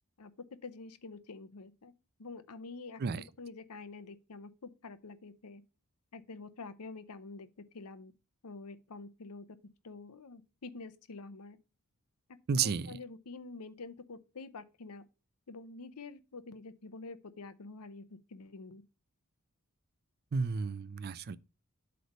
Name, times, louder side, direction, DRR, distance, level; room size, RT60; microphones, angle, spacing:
voice 1, 0.6-1.9 2.2-5.6 6.1-7.5 7.7-8.1 8.4-9.4 9.8-11.6 12.5-15.0 15.5-18.8, left 3 dB, 85° left, 0.7 m, -47 dB
voice 2, 12.5-13.0 20.3-21.4, right 5 dB, 45° right, 0.4 m, -32 dB
7.9 x 3.3 x 5.3 m
head